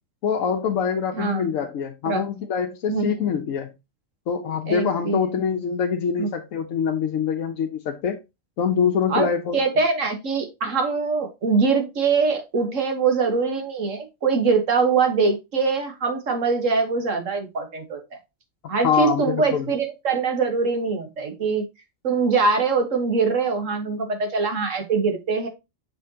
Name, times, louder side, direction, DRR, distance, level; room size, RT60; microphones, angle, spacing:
voice 1, 0.2-3.7 4.3-8.2 8.6-9.6 18.8-19.7, left 7 dB, 80° left, 1.1 m, -24 dB
voice 2, 2.9-3.4 4.7-5.3 6.2-6.3 9.1-18.0 18.7-21.6 22.0-25.5, right 4 dB, 70° right, 1.7 m, -23 dB
6.6 x 5.4 x 2.8 m
omnidirectional pair, 1.4 m